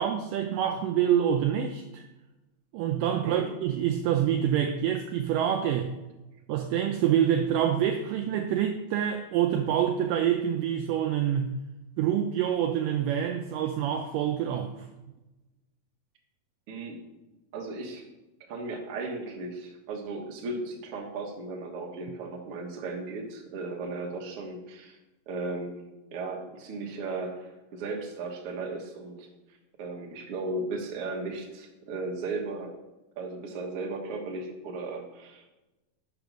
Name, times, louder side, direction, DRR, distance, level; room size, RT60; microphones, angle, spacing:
voice 1, 0.0-2.0 2.7-5.9 6.5-11.6 12.0-14.9, right 9 dB, 90° right, 5 dB, 1.9 m, -26 dB
voice 2, 3.2-3.5 16.7-17.0 17.5-18.0 18.5-25.0 25.3-25.7 26.1-29.3 29.8-32.7 33.2-35.5, right 3 dB, 65° right, 0 dB, 1.4 m, -36 dB
5.7 x 5.2 x 6.1 m, 1.0 s
omnidirectional pair, 4.4 m